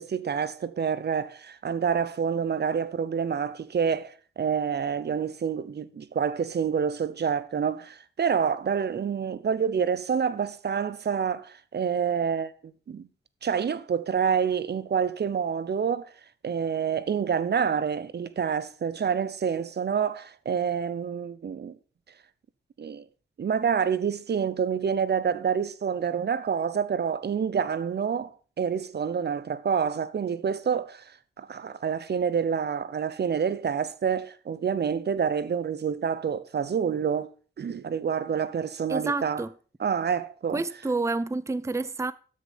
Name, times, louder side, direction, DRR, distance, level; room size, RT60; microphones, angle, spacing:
voice 1, 0.0-13.1 13.4-16.1 16.4-21.8 22.8-23.0 23.4-31.1 31.4-37.3 37.6-39.4 39.8-40.6, right 7 dB, 55° right, 0.8 m, -27 dB
voice 2, 38.9-39.5 40.5-42.1, right 3 dB, 15° right, 0.6 m, -29 dB
13.0 x 6.5 x 5.2 m
cardioid pair, 60°, 20 cm